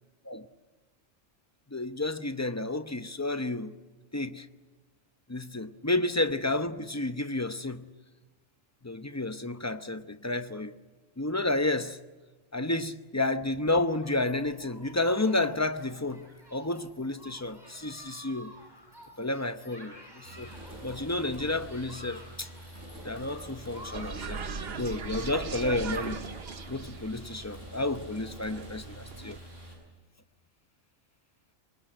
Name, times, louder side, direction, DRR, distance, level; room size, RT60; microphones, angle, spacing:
voice 1, 1.7-3.7 4.1-4.5 5.3-7.9 8.8-10.7 11.2-12.0 12.5-18.5 19.2-20.5 20.8-22.5 23.0-24.4 24.8-26.2 26.7-29.4, left 2 dB, 15° left, 0.6 m, -31 dB
Human group actions, 14.0-26.7, equal, 15° right, 6.4 m, -52 dB
sound 1, 20.2-29.8, right 1 dB, 70° right, 7.5 m, -46 dB
sound 2, 23.9-29.4, right 5 dB, 55° right, 1.2 m, -39 dB
24.5 x 20.5 x 7.8 m
omnidirectional pair, 1.3 m